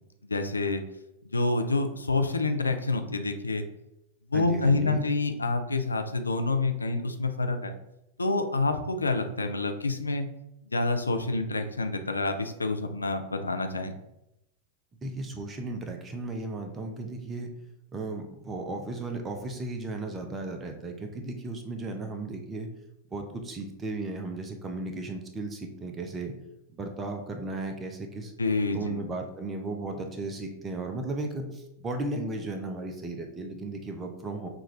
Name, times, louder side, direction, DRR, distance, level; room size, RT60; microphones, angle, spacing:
voice 1, 0.2-0.8 1.2-3.7 4.3-7.7 8.2-10.3 10.6-13.9 28.4-29.0, left 3 dB, 80° left, 6 dB, 0.4 m, -27 dB
voice 2, 4.3-5.1 15.0-17.5 17.9-22.7 23.1-26.3 26.7-28.3 28.7-34.5, right 2 dB, 20° right, 5 dB, 0.7 m, -35 dB
5.9 x 2.5 x 3.1 m, 0.88 s
figure-of-eight pair, 90°, 0 cm